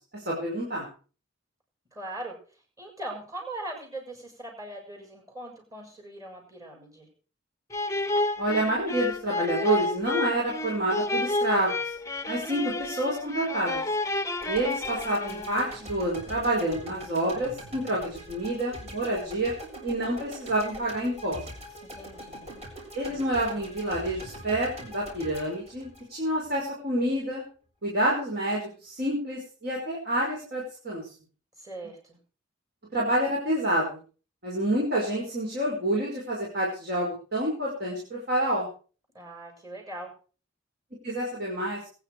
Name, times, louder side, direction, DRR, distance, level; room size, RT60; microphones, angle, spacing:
voice 1, 0.3-0.9 8.4-11.9 12.3-13.8 14.5-19.5 19.8-21.4 22.9-27.4 27.8-31.1 32.9-34.0 34.4-38.7 41.0-41.8, right 1 dB, 55° right, -3 dB, 5.2 m, -28 dB
voice 2, 1.9-2.3 2.8-7.1 21.8-22.5 31.6-32.2 39.1-40.1, right 1 dB, 20° right, 2 dB, 6.5 m, -40 dB
sound 1, 7.7-15.8, left 2 dB, 15° left, 0.8 m, -30 dB
sound 2, 14.4-26.6, equal, 35° right, 7.3 m, -43 dB
22.0 x 10.0 x 4.8 m, 0.39 s
head